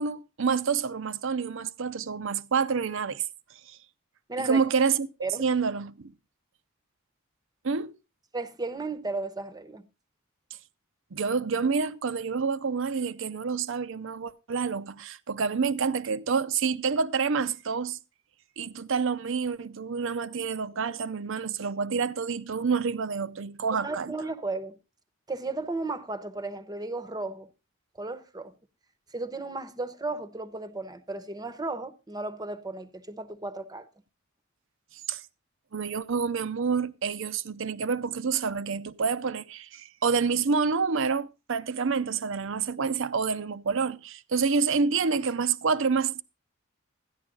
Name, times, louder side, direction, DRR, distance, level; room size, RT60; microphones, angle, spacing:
voice 1, 0.0-3.2 3.7-3.8 4.4-5.1 5.4-6.1 7.6-7.9 11.1-18.0 18.6-24.1 35.1-35.2 35.7-46.2, right 5 dB, 65° right, 0.6 m, -28 dB
voice 2, 4.3-4.6 5.2-5.4 8.3-9.9 23.7-24.8 25.3-27.5 28.0-28.5 29.1-33.9, right 2 dB, 20° right, 0.8 m, -34 dB
13.0 x 10.5 x 3.8 m
head